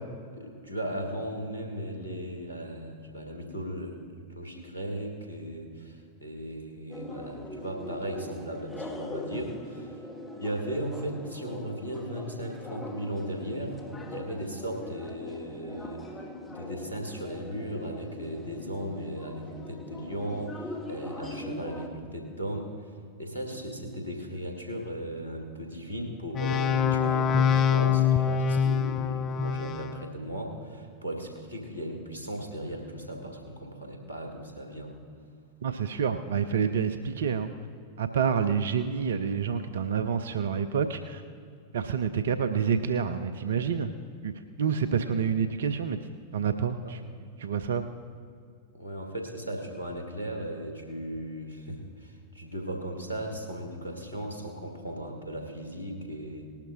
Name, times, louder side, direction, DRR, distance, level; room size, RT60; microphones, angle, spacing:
voice 1, 0.3-4.0 4.3-10.0 10.4-13.8 14.1-22.9 23.2-34.9 46.8-47.0 48.7-56.5, right 1 dB, 80° left, 1 dB, 2.1 m, -37 dB
sound 1, 6.9-21.9, left 2 dB, 15° left, 1.3 m, -41 dB
sound 2, 26.3-30.0, left 7 dB, 30° left, 0.5 m, -24 dB
voice 2, 35.6-37.5 38.0-41.2 41.7-43.9 44.2-44.3 44.6-46.0 46.3-47.0 47.4-47.8, right 7 dB, 65° right, 10 dB, 0.5 m, -28 dB
19.5 x 11.5 x 2.9 m, 2.3 s
figure-of-eight pair, 90°, 0 cm